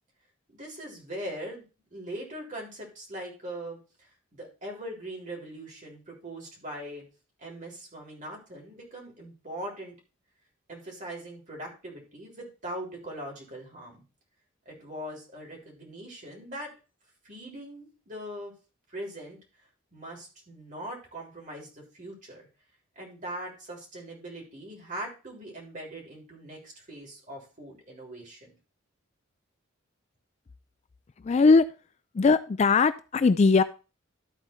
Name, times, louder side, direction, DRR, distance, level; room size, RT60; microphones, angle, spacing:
voice 1, 0.5-1.6 1.9-3.8 4.3-7.0 7.4-10.0 10.7-14.0 14.7-16.7 17.2-18.5 18.9-19.4 19.9-22.5 23.0-28.6, right 1 dB, 40° right, 3.6 m, -41 dB
voice 2, 31.2-31.6 32.1-33.6, left 4 dB, 35° left, 0.3 m, -20 dB
12.5 x 4.3 x 4.4 m
head